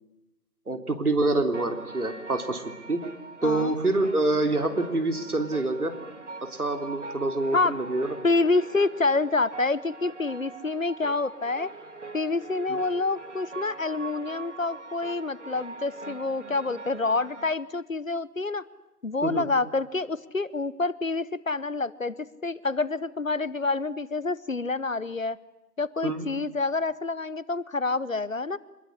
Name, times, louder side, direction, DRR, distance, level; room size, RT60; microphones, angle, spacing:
voice 1, 0.7-3.0 3.4-5.9 6.4-8.2 12.7-12.8 19.2-19.5 26.0-26.3, right 2 dB, 65° right, 6 dB, 3.6 m, -26 dB
sound 1, 1.5-17.5, right 3 dB, 45° right, 1.9 m, -43 dB
voice 2, 3.4-3.7 7.5-7.8 8.2-11.7 12.1-18.6 19.0-25.4 25.8-28.6, left 3 dB, 55° left, 18 dB, 1.0 m, -27 dB
24.5 x 21.5 x 10.0 m, 0.96 s
figure-of-eight pair, 170°, 48 cm